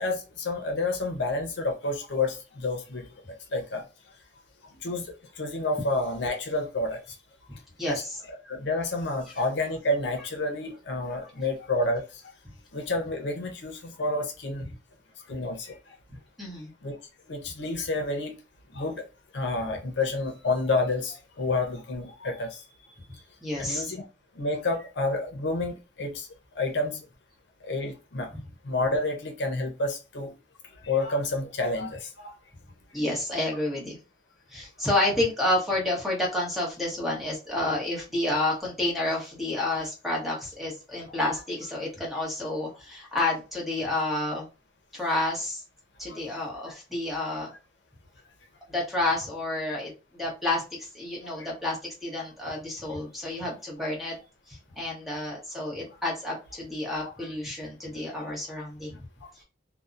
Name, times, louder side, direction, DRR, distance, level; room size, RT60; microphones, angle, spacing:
voice 1, 0.0-3.8 4.8-7.2 7.9-8.0 8.4-12.2 12.7-14.7 15.3-15.8 16.8-17.0 17.3-18.3 18.7-19.0 19.3-22.6 23.6-24.0 24.3-26.3 26.5-27.1 27.6-28.3 28.6-30.3 30.8-32.3 46.1-46.2 46.7-46.8 51.4-51.5 53.2-53.3 57.0-57.1 59.2-59.3, left 2 dB, 75° left, 0.6 m, -29 dB
voice 2, 7.5-8.2 11.1-11.3 16.4-16.7 23.4-23.9 32.9-34.0 34.5-44.5 44.9-45.6 46.0-47.5 48.7-54.2 54.5-59.0, left 1 dB, ahead, 0.9 m, -30 dB
2.7 x 2.0 x 2.4 m
head